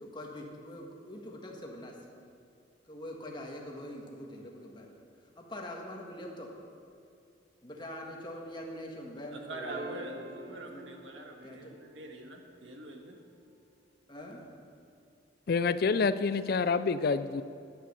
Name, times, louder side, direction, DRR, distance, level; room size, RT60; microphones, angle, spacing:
voice 1, 0.0-1.9 2.9-4.9 5.4-6.5 7.6-10.9 11.4-11.8 14.1-14.4, left 1 dB, 25° left, 0 dB, 1.6 m, -44 dB
voice 2, 9.3-13.2, right 2 dB, 80° right, 2 dB, 1.7 m, -45 dB
sound 1, 9.7-12.2 14.4-14.5, right 1 dB, 60° right, 2.6 m, -45 dB
voice 3, 15.5-17.4, left 4 dB, 55° left, 13 dB, 0.4 m, -27 dB
11.0 x 10.0 x 6.8 m, 2.6 s
head